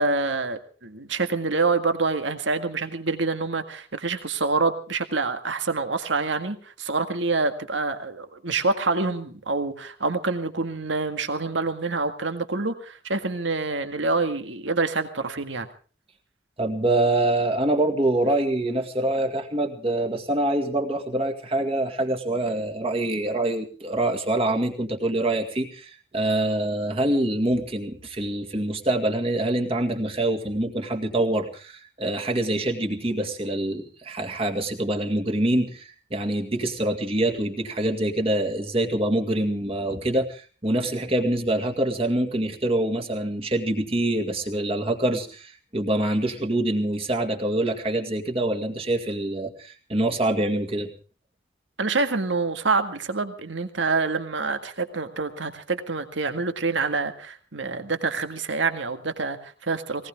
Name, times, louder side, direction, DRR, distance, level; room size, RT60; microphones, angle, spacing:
voice 1, 0.0-15.7 51.8-60.1, right 3 dB, 75° right, 8 dB, 1.9 m, -26 dB
voice 2, 16.6-50.9, right 1 dB, 30° right, 3 dB, 2.0 m, -25 dB
19.5 x 19.0 x 3.7 m, 0.38 s
head